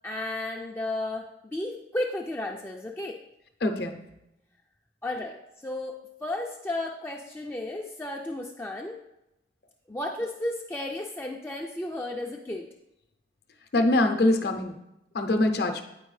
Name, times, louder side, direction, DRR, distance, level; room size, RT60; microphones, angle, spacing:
voice 1, 0.0-1.2 1.5-3.2 5.0-9.0 9.9-12.7, left 1 dB, 10° left, 0 dB, 0.3 m, -33 dB
voice 2, 3.6-4.0 13.7-14.7 15.1-15.8, left 2 dB, 55° left, 6 dB, 0.6 m, -23 dB
9.0 x 4.4 x 3.2 m, 0.87 s
head